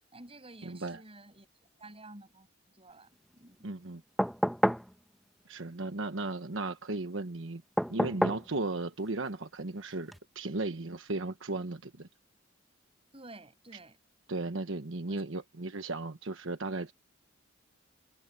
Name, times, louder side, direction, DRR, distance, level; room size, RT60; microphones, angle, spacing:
voice 1, 0.1-1.5 1.8-2.5 2.7-3.7 13.1-14.0 15.1-15.4, right 2 dB, 30° right, 6.4 m, -51 dB
voice 2, 0.6-1.0 3.6-4.0 5.5-7.6 7.9-12.1 14.3-16.9, right 2 dB, 85° right, 1.2 m, -36 dB
sound 1, 4.2-4.9 7.8-8.5 10.1-10.2, equal, ahead, 1.0 m, -28 dB
head